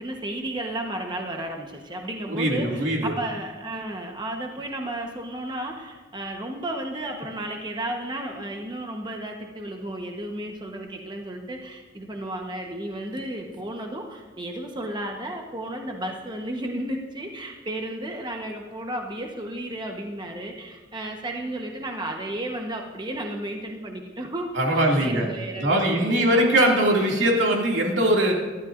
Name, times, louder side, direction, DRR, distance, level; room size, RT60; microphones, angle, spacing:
voice 1, 0.0-24.5 24.7-26.6, right 1 dB, 25° right, 1 dB, 1.2 m, -33 dB
voice 2, 2.3-3.1 24.5-25.3 25.6-28.3, right 1 dB, 80° right, -1 dB, 2.5 m, -21 dB
24.0 x 12.5 x 2.6 m, 1.3 s
head